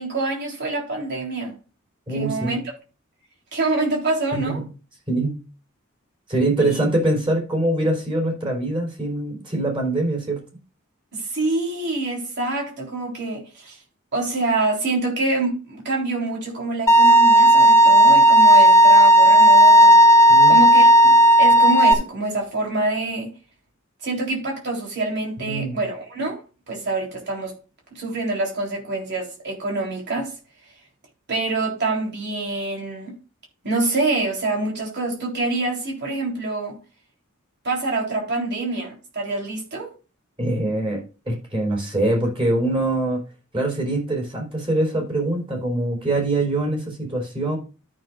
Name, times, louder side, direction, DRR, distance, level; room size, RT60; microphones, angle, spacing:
voice 1, 0.0-1.6 2.1-2.6 3.5-4.6 6.6-6.8 11.1-13.8 14.1-20.0 20.5-23.3 24.0-26.4 26.7-27.5 27.9-30.3 31.3-33.2 33.6-36.8 37.6-39.9, right 2 dB, 55° right, 3.6 m, -26 dB
voice 2, 2.1-2.6 4.3-4.6 5.1-5.4 6.3-10.4 20.3-20.6 25.4-25.8 40.4-43.2 43.5-47.6, right 2 dB, 25° right, 4.1 m, -23 dB
Bowed string instrument, 16.9-21.9, right 1 dB, 15° left, 1.1 m, -12 dB
13.5 x 6.4 x 2.5 m
head